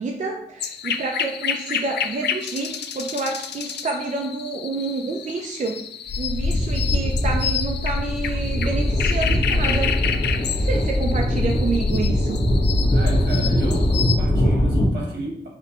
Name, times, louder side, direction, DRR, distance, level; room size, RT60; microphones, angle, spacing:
voice 1, 0.0-5.8 6.2-10.0 10.6-12.4, right 3 dB, 45° right, 1 dB, 0.6 m, -28 dB
sound 1, 0.6-14.2, left 8 dB, 80° left, 0.4 m, -30 dB
sound 2, 6.1-14.9, left 1 dB, 35° left, 1.4 m, -21 dB
voice 2, 12.9-15.5, right 1 dB, 80° right, -1 dB, 1.6 m, -33 dB
5.1 x 2.4 x 4.3 m, 0.75 s
cardioid pair, 85°, 17 cm